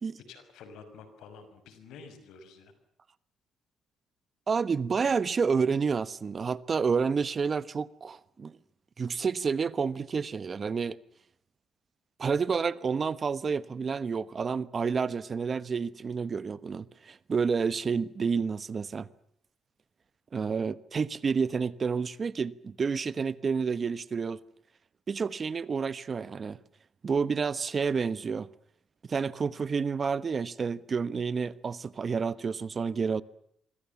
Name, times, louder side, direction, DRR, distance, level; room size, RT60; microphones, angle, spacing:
voice 1, 0.3-2.7, left 5 dB, 85° left, 5.9 m, -49 dB
voice 2, 4.5-8.5 9.0-11.0 12.2-19.1 20.3-24.4 25.1-26.6 27.0-28.5 29.1-33.2, right 5 dB, 40° right, 1.2 m, -29 dB
27.0 x 23.5 x 7.2 m
cardioid pair, 90°, 0 cm